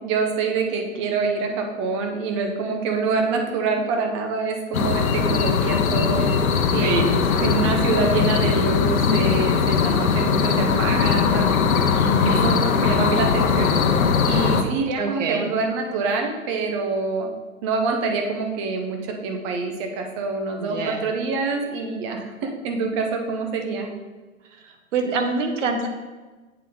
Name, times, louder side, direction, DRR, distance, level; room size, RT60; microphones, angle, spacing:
voice 1, 0.0-6.3 6.7-7.1 7.4-11.5 12.2-13.7 14.2-17.3 17.6-23.9, right 4 dB, 20° right, 4 dB, 0.6 m, -26 dB
sound 1, 4.7-14.6, left 6 dB, 90° left, 0.8 m, -20 dB
voice 2, 6.8-7.1 7.4-7.6 12.0-12.5 15.0-15.5 20.6-21.0 24.9-25.9, right 3 dB, 60° right, 5 dB, 1.2 m, -25 dB
8.5 x 3.6 x 3.9 m, 1.3 s
hypercardioid pair, 145°, 41 cm